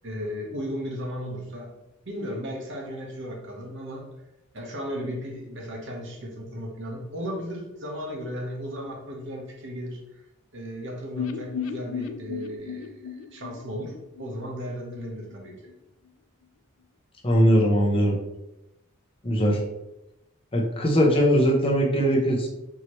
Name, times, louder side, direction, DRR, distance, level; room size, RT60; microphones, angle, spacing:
voice 1, 0.0-1.7 2.0-4.1 4.5-10.0 10.5-13.9 14.2-15.5, equal, 60° right, 0 dB, 1.0 m, -35 dB
sound 1, 11.2-15.0 15.3-15.4 15.7-15.8, left 7 dB, 75° left, 0.4 m, -35 dB
voice 2, 17.2-18.2 19.2-19.6 20.5-22.5, equal, 25° left, -1 dB, 0.8 m, -20 dB
4.7 x 3.0 x 3.0 m, 0.90 s
head